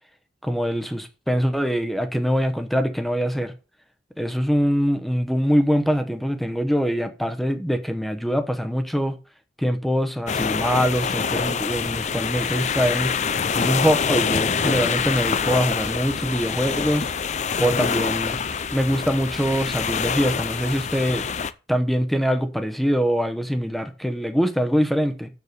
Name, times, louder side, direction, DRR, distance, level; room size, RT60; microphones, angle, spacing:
voice 1, 0.4-3.5 4.2-9.2 9.6-13.1 13.5-17.1 17.6-18.4 18.7-21.2 21.7-25.3, equal, ahead, 0.9 m, -23 dB
sound 1, 10.3-21.5, left 6 dB, 40° left, 0.5 m, -25 dB
6.9 x 6.7 x 6.7 m
head